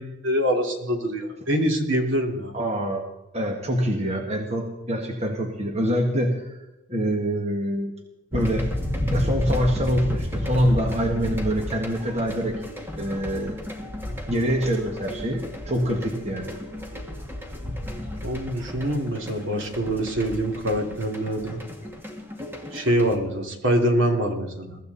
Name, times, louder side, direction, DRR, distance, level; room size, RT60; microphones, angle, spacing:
voice 1, 0.0-2.5 18.2-21.6 22.7-24.8, equal, 60° right, 3 dB, 2.9 m, -25 dB
voice 2, 2.5-3.0 3.3-6.6 6.9-7.9 8.3-8.7 9.1-12.6 13.0-13.6 14.3-16.5, equal, 30° right, 2 dB, 1.7 m, -25 dB
sound 1, 8.3-23.2, left 1 dB, 10° right, 2.1 m, -32 dB
23.0 x 14.5 x 4.2 m, 0.98 s
head